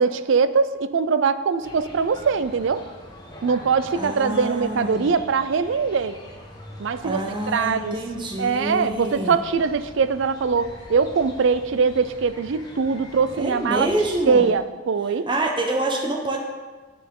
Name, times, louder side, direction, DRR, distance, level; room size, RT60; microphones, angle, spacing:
voice 1, 0.0-2.9 3.4-6.2 6.8-7.2 7.5-8.0 8.4-13.9 14.2-15.3, right 5 dB, 60° right, 13 dB, 0.4 m, -22 dB
sound 1, 1.6-14.5, left 1 dB, 20° left, 1.2 m, -43 dB
voice 2, 3.9-5.1 7.0-9.4 13.4-14.5 15.3-16.4, right 1 dB, 20° right, 2 dB, 0.7 m, -26 dB
9.0 x 7.4 x 3.7 m, 1.4 s
head